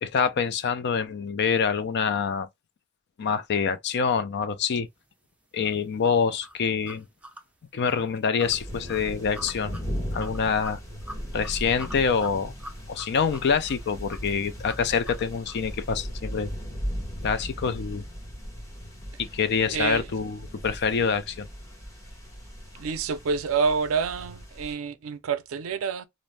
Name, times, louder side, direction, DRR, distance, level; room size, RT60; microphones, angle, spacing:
voice 1, 0.0-2.5 3.2-4.9 5.5-7.1 7.7-9.7 10.1-10.8 11.3-12.5 12.9-16.5 17.2-18.0 19.2-21.5, left 6 dB, 55° left, 0.4 m, -26 dB
sound 1, 5.6-15.7, equal, 5° right, 0.5 m, -46 dB
sound 2, 8.4-24.7, equal, 15° left, 1.2 m, -38 dB
voice 2, 19.7-20.1 22.8-26.1, right 5 dB, 70° right, 0.4 m, -27 dB
2.5 x 2.0 x 3.1 m
head